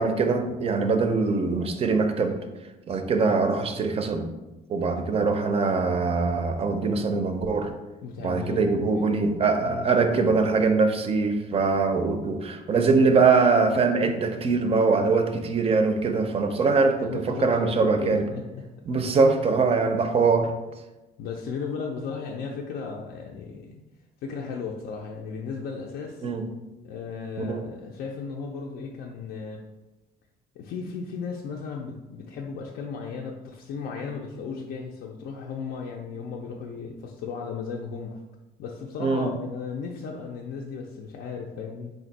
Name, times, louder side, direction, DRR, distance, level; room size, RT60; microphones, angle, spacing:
voice 1, 0.0-2.4 2.9-4.3 4.7-7.7 8.2-18.2 18.9-20.5 26.2-26.5 27.5-27.6 39.0-39.3, right 4 dB, 35° right, 7 dB, 0.4 m, -22 dB
voice 2, 8.0-9.3 9.6-10.0 17.0-18.7 20.4-20.5 21.2-23.8 24.2-26.3 26.8-29.6 30.6-38.2 38.6-41.9, left 5 dB, 70° left, 0 dB, 0.4 m, -35 dB
3.4 x 2.5 x 4.0 m, 1.1 s
cardioid pair, 110°, 17 cm